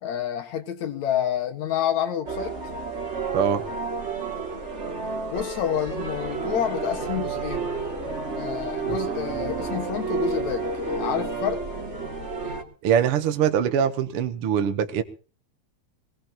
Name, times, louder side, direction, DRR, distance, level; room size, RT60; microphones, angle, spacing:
voice 1, 0.0-2.6 5.3-7.7 8.4-11.6, left 9 dB, 75° left, 3.0 m, -28 dB
sound 1, 2.3-12.6, right 4 dB, 25° right, 2.4 m, -30 dB
voice 2, 12.8-15.0, right 8 dB, 60° right, 1.7 m, -23 dB
22.5 x 18.5 x 2.9 m
omnidirectional pair, 3.3 m